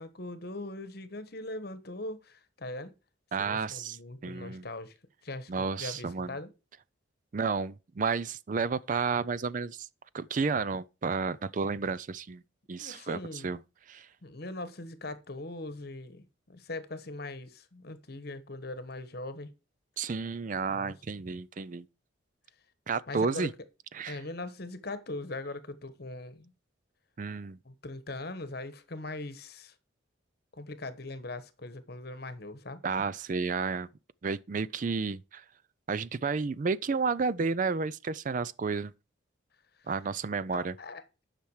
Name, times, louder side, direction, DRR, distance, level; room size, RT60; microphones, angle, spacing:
voice 1, 0.0-2.9 3.4-5.0 5.2-6.5 12.7-13.5 14.2-19.5 20.7-20.9 23.1-23.5 24.1-26.5 27.6-29.7 30.5-32.8 40.5-41.2, left 2 dB, 50° left, 1.2 m, -41 dB
voice 2, 3.3-4.7 5.5-6.4 7.3-9.9 10.1-12.4 12.7-13.6 13.9-14.1 20.0-21.9 22.9-23.5 23.9-24.2 27.2-27.6 32.8-33.9 34.2-35.4 35.9-38.9 39.9-40.7, right 5 dB, 40° right, 0.4 m, -31 dB
10.5 x 5.9 x 4.8 m
head